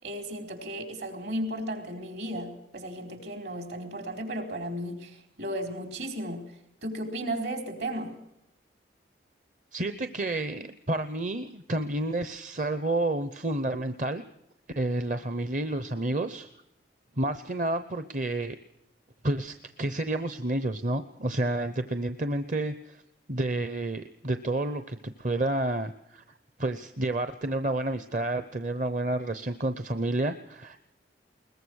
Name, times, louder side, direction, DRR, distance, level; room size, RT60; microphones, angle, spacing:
voice 1, 0.0-6.5 6.8-8.1, right 1 dB, 65° right, 5 dB, 4.6 m, -34 dB
voice 2, 9.7-14.2 14.8-16.5 17.2-18.6 19.2-23.0 23.3-26.2 26.6-30.8, right 2 dB, 40° right, 10 dB, 0.8 m, -30 dB
22.0 x 20.5 x 6.4 m, 0.82 s
head